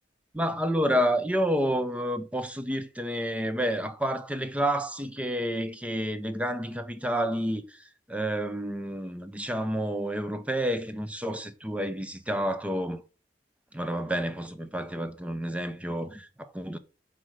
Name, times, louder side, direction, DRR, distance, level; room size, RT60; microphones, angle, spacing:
voice 1, 0.3-13.0 13.7-16.8, equal, 5° right, 0.7 m, -29 dB
7.7 x 5.1 x 6.3 m
head